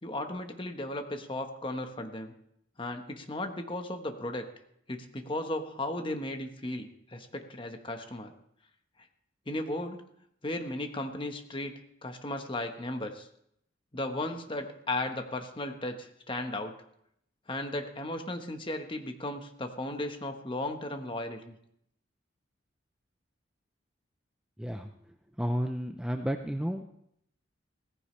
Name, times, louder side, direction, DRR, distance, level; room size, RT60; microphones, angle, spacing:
voice 1, 0.0-2.3 2.8-4.5 4.9-8.3 9.5-10.0 10.4-11.7 12.0-13.3 13.9-16.7 17.5-21.5, left 1 dB, 25° left, 6 dB, 1.2 m, -35 dB
voice 2, 24.6-24.9 25.4-26.8, equal, 5° right, 5 dB, 0.5 m, -31 dB
17.5 x 15.0 x 3.3 m, 0.73 s
head